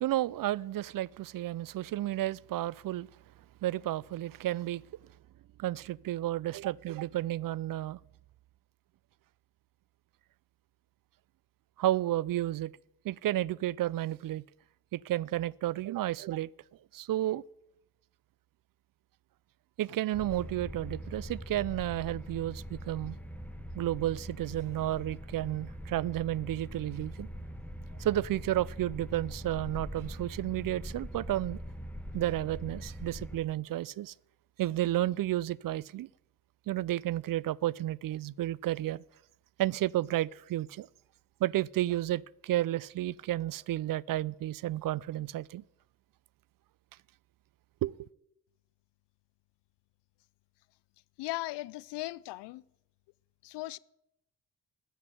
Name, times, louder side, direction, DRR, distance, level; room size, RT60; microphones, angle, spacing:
voice 1, 0.0-3.1 3.6-4.8 5.6-8.0 11.8-12.7 13.0-14.4 14.9-16.5 16.9-17.4 19.8-23.2 23.7-27.3 28.0-31.6 32.1-34.1 34.6-36.1 36.7-39.0 39.6-40.9 41.4-45.6 47.8-48.1, right 14 dB, 55° right, 0.5 m, -32 dB
sound 1, 20.1-33.4, equal, 5° left, 1.8 m, -42 dB
voice 2, 51.2-52.6 53.4-53.8, left 19 dB, 75° left, 0.6 m, -37 dB
13.5 x 8.1 x 9.2 m
hypercardioid pair, 50°, 42 cm